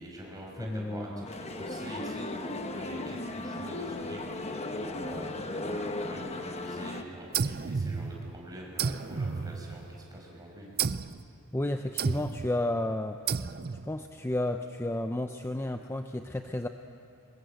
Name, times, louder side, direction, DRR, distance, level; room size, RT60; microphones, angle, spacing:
voice 1, 0.0-10.7, equal, 15° right, -2 dB, 5.7 m, -45 dB
voice 2, 0.6-1.2 11.5-13.4 13.8-16.7, left 1 dB, 10° left, 6 dB, 0.5 m, -32 dB
Male speech man speaking, 1.2-7.0, left 2 dB, 30° left, 1.1 m, -36 dB
sound 1, 7.3-8.4 8.8-10.1 10.8-11.2 12.0-12.5 13.3-13.9, right 5 dB, 45° right, 0.5 m, -32 dB
23.0 x 21.0 x 7.9 m, 2.8 s
head